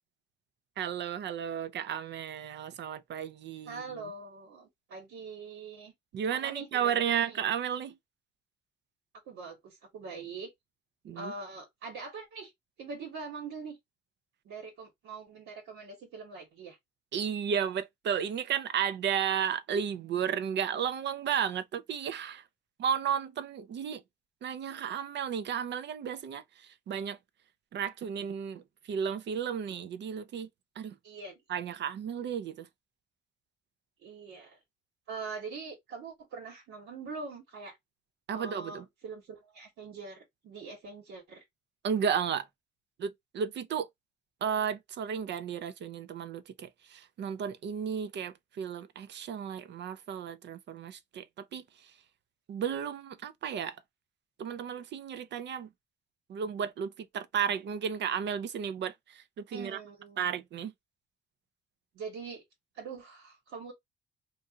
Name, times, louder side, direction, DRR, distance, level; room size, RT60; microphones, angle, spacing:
voice 1, 0.8-4.0 6.1-7.9 11.0-11.3 17.1-22.4 22.8-24.0 24.4-26.4 26.9-27.2 27.7-28.6 28.9-30.5 30.8-31.0 31.5-32.7 38.3-38.8 41.8-42.5 43.0-43.9 44.4-51.6 52.5-53.8 54.4-55.7 56.3-59.8 60.2-60.7, right 8 dB, 65° right, 0.6 m, -33 dB
voice 2, 3.6-5.9 6.3-7.4 9.2-10.5 11.1-12.5 12.8-13.8 14.4-16.8 31.0-31.4 34.0-34.6 35.1-37.8 38.3-41.4 59.5-60.4 61.9-62.4 62.7-63.7, right 4 dB, 85° right, 1.4 m, -43 dB
2.7 x 2.6 x 3.6 m
cardioid pair, 90°, 20 cm